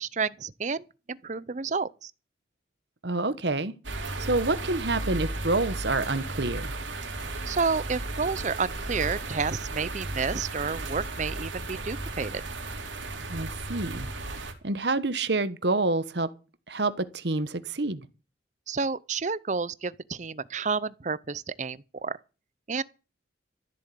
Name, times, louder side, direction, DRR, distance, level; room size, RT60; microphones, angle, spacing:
voice 1, 0.0-2.1 7.5-12.4 18.7-22.1 22.7-22.8, right 5 dB, 40° right, 0.6 m, -30 dB
voice 2, 3.0-3.7 4.2-6.7 13.3-14.1 14.6-16.3 16.7-18.1, right 2 dB, 60° right, 1.2 m, -27 dB
sound 1, 3.8-14.5, right 2 dB, 85° right, 3.2 m, -35 dB
14.0 x 7.5 x 8.5 m
head